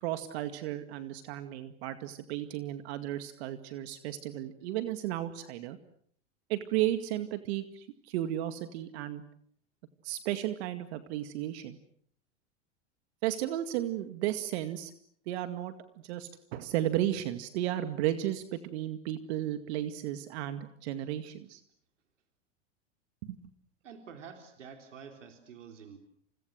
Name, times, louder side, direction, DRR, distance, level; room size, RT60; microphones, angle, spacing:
voice 1, 0.0-5.8 6.5-9.2 10.0-11.8 13.2-14.9 15.3-15.7 16.0-21.6 23.2-23.5, right 13 dB, 60° right, 9 dB, 2.2 m, -34 dB
voice 2, 23.8-26.0, right 6 dB, 85° right, 4 dB, 3.8 m, -48 dB
30.0 x 29.0 x 6.5 m, 0.63 s
hypercardioid pair, 105°, 36 cm